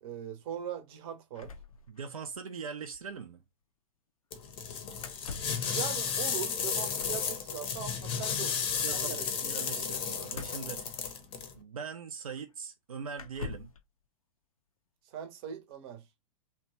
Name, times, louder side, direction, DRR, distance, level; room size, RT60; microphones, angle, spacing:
voice 1, 0.0-1.5 5.7-9.3 9.8-9.9 15.1-16.0, right 9 dB, 50° right, 0.7 m, -40 dB
sound 1, 1.3-2.4 2.7-2.8 2.9-3.1 5.0-5.7 7.0-7.3 10.3-11.5 12.3-12.4 13.1-13.8, left 5 dB, 85° left, 0.4 m, -45 dB
voice 2, 1.9-3.4 8.8-10.9 11.5-13.7, right 6 dB, 85° right, 0.4 m, -41 dB
sound 2, 4.3-11.5, left 7 dB, 30° left, 0.6 m, -33 dB
2.9 x 2.2 x 2.7 m
figure-of-eight pair, 100°, 18 cm